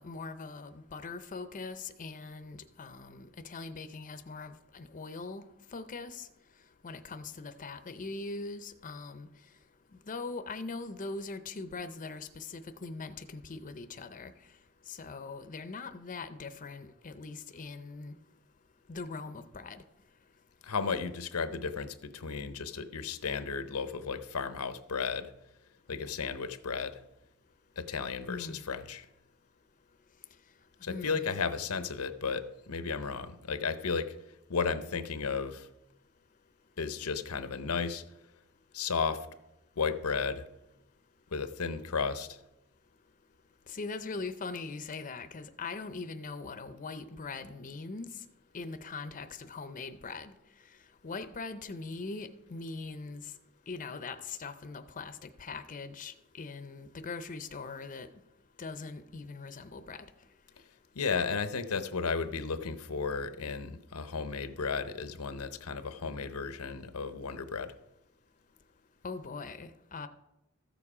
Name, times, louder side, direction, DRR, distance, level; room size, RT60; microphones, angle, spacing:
voice 1, 0.0-5.4 5.7-6.3 6.8-9.3 10.1-14.3 14.9-18.1 18.9-19.8 28.3-28.6 30.9-31.3 43.7-48.2 48.5-50.3 51.0-53.3 53.7-58.1 58.6-60.1 69.0-70.1, left 3 dB, 35° left, 10 dB, 0.6 m, -41 dB
voice 2, 20.6-25.3 25.9-27.0 27.8-29.1 30.8-34.1 34.5-35.7 36.8-38.0 38.7-39.3 39.8-40.4 41.3-42.4 60.9-67.7, left 5 dB, 85° left, 11 dB, 0.8 m, -34 dB
14.0 x 7.1 x 4.9 m, 0.89 s
head